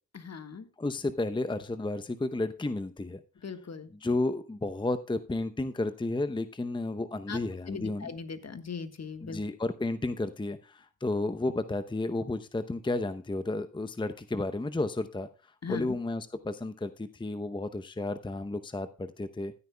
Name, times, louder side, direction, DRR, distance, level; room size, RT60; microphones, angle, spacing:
voice 1, 0.1-0.7 3.4-3.9 7.3-7.4 7.7-9.4 15.6-15.9, left 5 dB, 45° left, 9 dB, 1.6 m, -39 dB
voice 2, 0.8-3.2 4.0-8.1 9.2-15.3 15.7-19.5, left 2 dB, 15° left, 10 dB, 0.8 m, -32 dB
15.5 x 9.2 x 2.3 m, 0.34 s
supercardioid pair, 40°, 36 cm